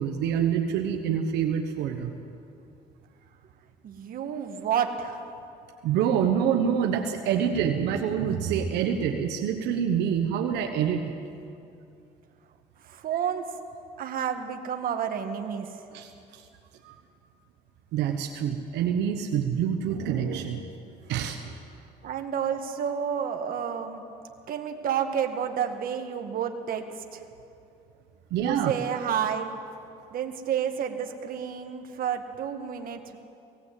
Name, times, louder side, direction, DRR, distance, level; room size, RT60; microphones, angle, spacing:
voice 1, 0.0-2.1 5.8-11.1 15.9-16.4 16.8-16.9 17.9-20.6 21.1-21.5 28.3-28.7, right 8 dB, 85° right, 4 dB, 1.2 m, -26 dB
voice 2, 3.8-5.2 12.8-13.5 14.0-15.7 22.0-24.0 24.5-26.8 27.1-27.2 28.4-29.6 30.1-33.2, right 8 dB, 60° right, 5 dB, 1.9 m, -30 dB
18.0 x 18.0 x 8.5 m, 2.6 s
cardioid pair, 110°, 17 cm